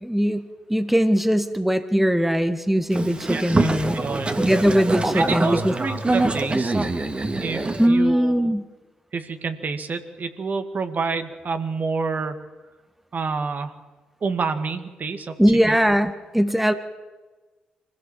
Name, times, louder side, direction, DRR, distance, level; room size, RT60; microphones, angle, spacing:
voice 1, 0.0-4.0 4.4-5.7 7.8-8.6 15.4-16.7, equal, 5° right, 10 dB, 1.5 m, -20 dB
Boat Water vehicle, 2.9-7.9, right 2 dB, 30° right, 2.2 m, -24 dB
voice 2, 3.3-3.7 3.9-4.4 5.1-6.9 7.4-8.5 9.1-12.4 13.1-13.7 14.2-15.4 15.7-15.8, right 4 dB, 45° right, 8 dB, 2.0 m, -28 dB
25.0 x 16.0 x 7.5 m, 1.3 s
hypercardioid pair, 45°, 4 cm